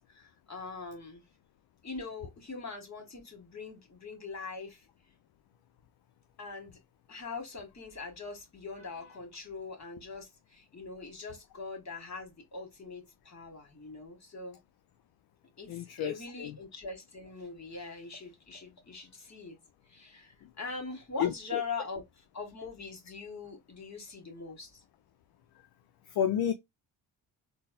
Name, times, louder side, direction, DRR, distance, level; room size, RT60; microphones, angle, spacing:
voice 1, 0.1-1.2 1.8-4.8 6.4-6.8 7.1-14.6 15.6-19.6 19.9-22.0 22.3-24.8, left 4 dB, 35° left, 1.7 m, -42 dB
voice 2, 15.7-16.6 20.4-20.5 21.2-21.6 26.1-26.5, left 9 dB, 50° left, 0.5 m, -31 dB
3.9 x 2.2 x 2.4 m
hypercardioid pair, 45°, 49 cm